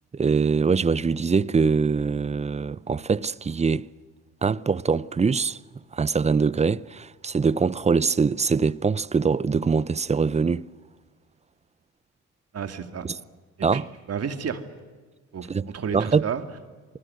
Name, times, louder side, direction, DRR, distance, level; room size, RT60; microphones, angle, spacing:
voice 1, 0.1-3.9 4.4-5.6 5.9-10.7 13.6-13.9 15.5-16.3, right 5 dB, 20° right, 0.7 m, -23 dB
voice 2, 12.5-13.1 13.7-13.8 14.1-14.6 15.3-16.4, right 7 dB, 55° right, 2.4 m, -31 dB
28.0 x 20.0 x 7.9 m
cardioid pair, 90°, 30 cm